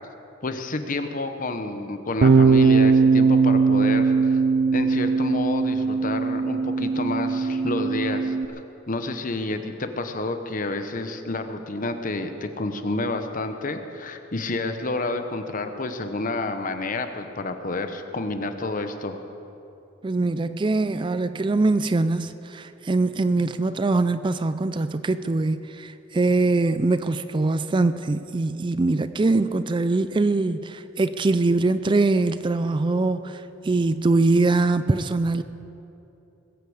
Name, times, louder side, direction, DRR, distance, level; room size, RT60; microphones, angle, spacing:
voice 1, 0.4-4.4 4.7-8.4 8.9-19.2, left 2 dB, 45° left, 7 dB, 1.0 m, -29 dB
Bass guitar, 2.2-8.5, right 4 dB, 85° right, 0.6 m, -20 dB
voice 2, 20.0-35.4, right 3 dB, 25° right, 12 dB, 0.4 m, -23 dB
20.5 x 8.4 x 8.0 m, 2.9 s
head